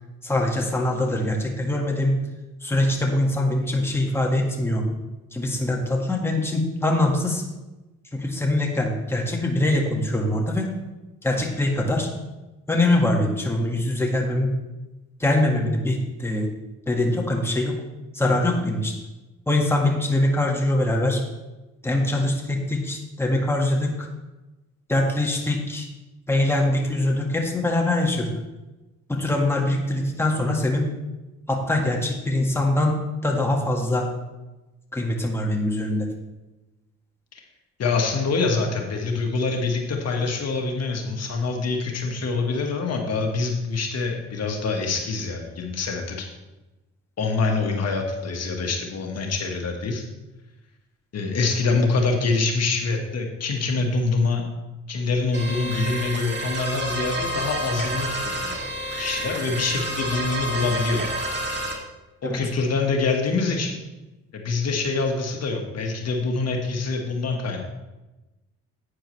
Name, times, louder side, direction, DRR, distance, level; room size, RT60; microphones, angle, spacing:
voice 1, 0.2-2.2 2.6-4.8 5.3-7.4 8.1-10.7 11.2-12.1 12.7-14.5 15.2-16.5 16.9-17.8 18.1-18.9 19.5-21.2 21.8-24.1 24.9-25.9 26.3-28.3 29.1-30.9 31.5-32.9 33.2-34.1 34.9-36.1 62.2-62.4, left 1 dB, 10° left, 0 dB, 1.7 m, -23 dB
voice 2, 37.8-46.3 47.2-50.0 51.1-54.4 54.9-58.5 59.0-61.0 62.2-63.8 64.3-67.6, left 3 dB, 55° left, 2 dB, 1.6 m, -25 dB
sound 1, 55.3-61.7, right 1 dB, 35° right, 2.3 m, -29 dB
11.5 x 8.9 x 3.2 m, 1.1 s
cardioid pair, 90°, 30 cm